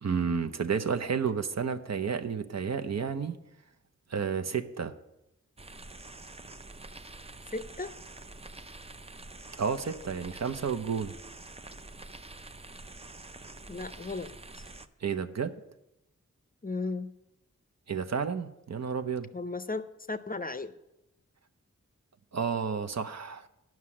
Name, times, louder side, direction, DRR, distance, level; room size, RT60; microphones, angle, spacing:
voice 1, 0.0-3.4 4.1-4.9 9.6-11.1 15.0-15.5 17.9-19.3 22.3-23.5, right 6 dB, 60° right, 8 dB, 0.7 m, -31 dB
sound 1, 5.6-14.9, right 2 dB, 20° right, 0.5 m, -47 dB
voice 2, 7.5-7.9 13.7-14.6 16.6-17.1 19.3-20.7, left 3 dB, 30° left, 11 dB, 0.5 m, -36 dB
9.5 x 6.1 x 8.5 m, 0.90 s
wide cardioid pair, 85°, 30 cm